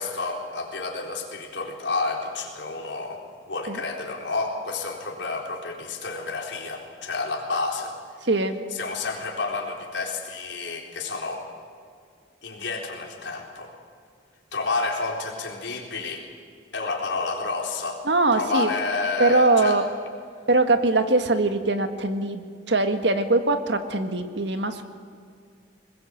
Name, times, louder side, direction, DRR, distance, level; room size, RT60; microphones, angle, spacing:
voice 1, 0.0-7.9 8.7-11.5 12.4-13.7 14.5-16.3 16.7-18.0 18.3-19.8, left 3 dB, 75° left, 1 dB, 4.0 m, -30 dB
voice 2, 8.2-8.6 18.0-18.7 19.2-19.8 20.5-24.8, right 2 dB, 70° right, 8 dB, 1.6 m, -22 dB
21.5 x 21.0 x 8.0 m, 2.2 s
head